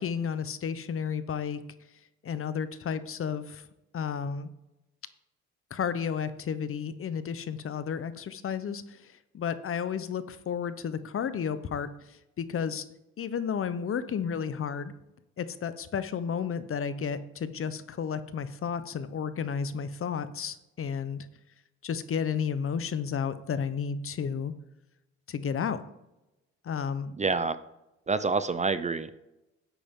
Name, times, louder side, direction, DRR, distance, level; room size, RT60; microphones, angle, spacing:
voice 1, 0.0-1.6 2.2-3.6 3.9-4.5 5.7-12.8 13.2-14.9 15.4-21.3 21.8-24.5 25.3-25.8 26.6-27.1, left 7 dB, 45° left, 13 dB, 0.8 m, -32 dB
voice 2, 27.2-27.6 28.1-29.1, right 4 dB, 25° right, 13 dB, 0.5 m, -27 dB
10.5 x 8.5 x 3.7 m, 0.93 s
cardioid pair, 90°, 30 cm